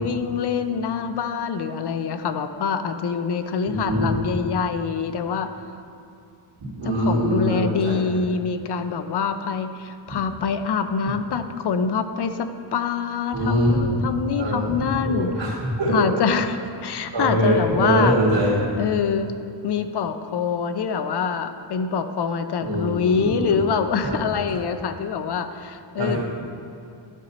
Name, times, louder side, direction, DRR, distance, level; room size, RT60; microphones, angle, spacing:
voice 1, 0.0-5.5 6.8-15.3 15.9-16.6 16.8-18.2 18.8-19.3 19.6-26.2, left 6 dB, 60° left, 9 dB, 0.5 m, -25 dB
voice 2, 3.7-4.1 6.8-8.0 10.1-10.2 13.3-14.0 14.3-14.8 15.0-16.1 17.1-18.6 22.6-23.6 24.0-24.2 24.5-24.6 26.0-26.2, right 1 dB, 65° right, -10 dB, 2.1 m, -23 dB
11.0 x 5.4 x 4.1 m, 2.6 s
wide cardioid pair, 150°, 46 cm